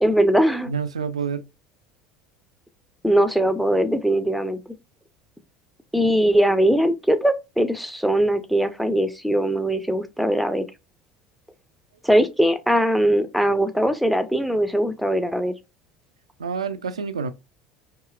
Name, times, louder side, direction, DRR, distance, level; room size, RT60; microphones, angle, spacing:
voice 1, 0.0-0.7 3.0-4.6 5.9-10.7 12.0-15.5, right 1 dB, ahead, 0.5 m, -20 dB
voice 2, 0.7-1.5 16.4-17.3, right 6 dB, 75° right, 0.4 m, -28 dB
4.7 x 2.7 x 2.4 m
figure-of-eight pair, 70°, 3 cm